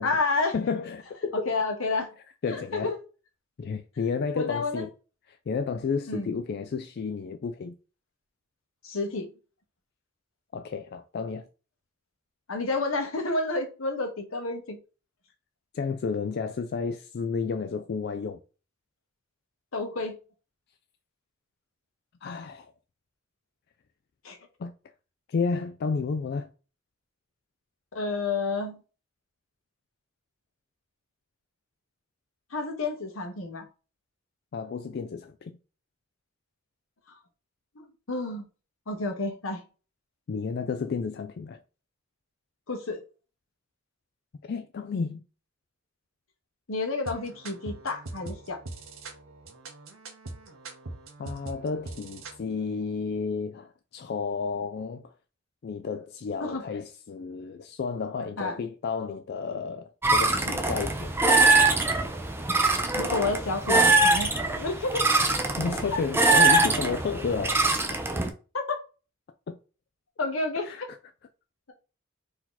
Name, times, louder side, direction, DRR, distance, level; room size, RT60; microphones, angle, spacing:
voice 1, 0.0-0.5 1.5-2.1 2.5-3.0 4.3-4.8 6.1-6.4 8.8-9.3 12.5-14.8 19.7-20.2 24.2-24.4 27.9-28.8 32.5-33.7 37.8-38.4 38.9-39.6 42.7-43.0 46.7-48.6 56.4-56.6 58.4-58.5 63.0-65.1 65.9-66.0 68.5-68.8 70.2-70.9, left 3 dB, 85° left, 1.2 m, -30 dB
voice 2, 0.5-1.5 2.4-2.9 3.6-4.9 5.5-7.7 10.5-11.4 15.7-18.4 22.2-22.7 24.6-24.7 25.3-26.5 34.5-35.6 40.3-41.6 44.4-45.2 51.2-55.1 55.6-61.4 65.6-67.6 67.9-68.0 69.5-69.6 70.6-70.8, left 5 dB, 50° left, 0.3 m, -31 dB
sound 1, 47.0-52.4, right 2 dB, 75° right, 1.1 m, -42 dB
sound 2, 60.0-68.3, right 2 dB, 10° right, 0.5 m, -23 dB
4.4 x 2.8 x 3.9 m
head